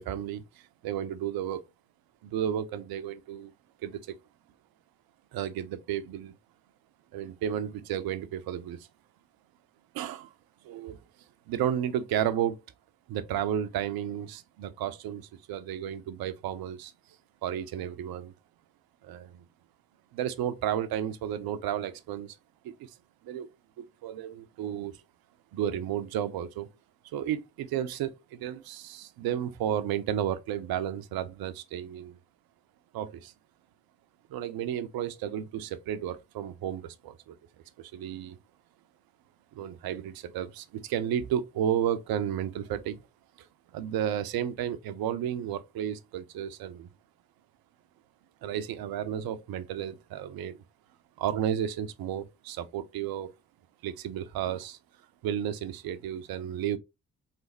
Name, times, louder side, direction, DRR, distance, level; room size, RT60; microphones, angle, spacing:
voice 1, 0.0-1.6 2.2-3.5 3.8-4.2 5.3-6.3 7.1-8.9 9.9-10.3 10.6-11.0 11.5-12.6 13.1-16.9 17.4-18.3 19.0-19.5 20.1-22.4 22.6-22.9 23.2-23.5 23.8-24.9 25.5-26.7 27.1-32.2 32.9-33.3 34.3-37.4 37.8-38.4 39.5-43.0 43.4-43.5 43.7-46.9 48.4-50.6 51.2-53.3 53.8-54.8 55.2-56.8, right 10 dB, 60° right, 0.7 m, -32 dB
3.8 x 3.3 x 3.0 m
hypercardioid pair, 40°, 41 cm